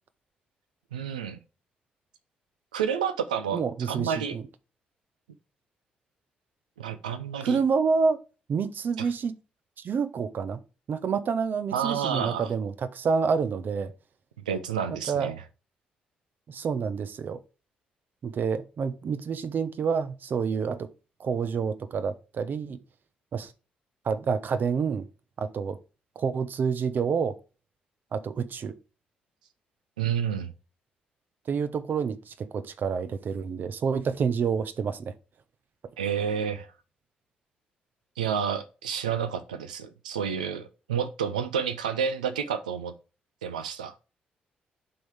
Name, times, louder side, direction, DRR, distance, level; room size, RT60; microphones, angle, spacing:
voice 1, 0.9-1.4 2.7-3.6 3.9-4.4 6.8-7.6 9.0-9.1 11.7-12.5 14.5-15.4 30.0-30.5 36.0-36.7 38.2-42.9 43.4-43.9, right 7 dB, 85° right, 0.6 m, -30 dB
voice 2, 3.5-4.4 7.4-8.2 8.5-9.4 9.8-10.6 10.9-13.9 14.9-15.3 16.5-17.4 18.2-20.9 21.2-22.8 23.3-23.5 24.0-25.1 25.4-25.8 26.2-27.4 28.1-28.7 31.5-35.1, right 5 dB, 50° right, 0.8 m, -28 dB
11.5 x 3.9 x 3.4 m
figure-of-eight pair, 40°, 4 cm